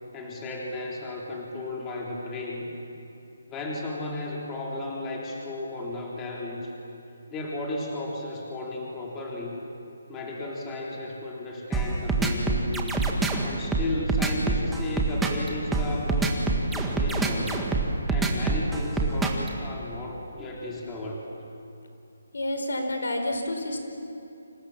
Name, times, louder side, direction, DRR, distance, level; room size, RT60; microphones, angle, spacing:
voice 1, 0.1-2.7 3.5-6.7 7.3-9.6 10.1-13.0 13.4-16.3 16.7-17.7 18.1-21.2, left 2 dB, 15° left, -3 dB, 3.5 m, -34 dB
sound 1, 11.7-19.5, right 3 dB, 5° right, 1.7 m, -25 dB
voice 2, 22.3-23.8, left 1 dB, 80° left, 5 dB, 4.9 m, -29 dB
29.5 x 27.0 x 7.4 m, 2.7 s
hypercardioid pair, 165°, 0 cm